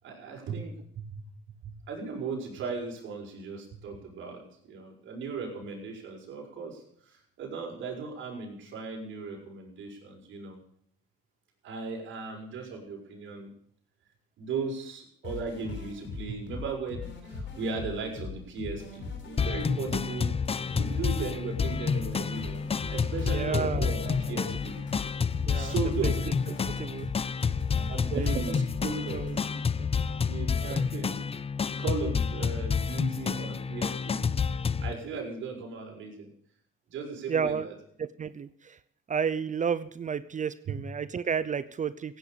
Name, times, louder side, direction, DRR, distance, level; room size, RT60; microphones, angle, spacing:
voice 1, 0.0-1.3 1.6-10.6 11.6-13.5 14.4-22.6 22.9-24.9 25.5-26.3 27.9-29.5 30.3-31.3 31.5-34.3 34.8-36.3 36.9-37.7 40.7-40.8, right 5 dB, 75° right, 0 dB, 6.3 m, -37 dB
sound 1, 15.2-29.3, left 4 dB, 70° left, 6.8 m, -40 dB
sound 2, 19.4-34.9, left 5 dB, 30° left, 0.7 m, -29 dB
voice 2, 23.3-23.9 25.4-25.7 26.0-26.1 26.7-27.1 28.2-28.3 29.1-29.4 29.8-29.9 30.6-30.8 37.3-37.7 38.0-38.8 39.1-42.2, right 6 dB, 40° right, 16 dB, 0.7 m, -32 dB
16.5 x 10.0 x 7.0 m, 0.66 s
cardioid pair, 90°, 20 cm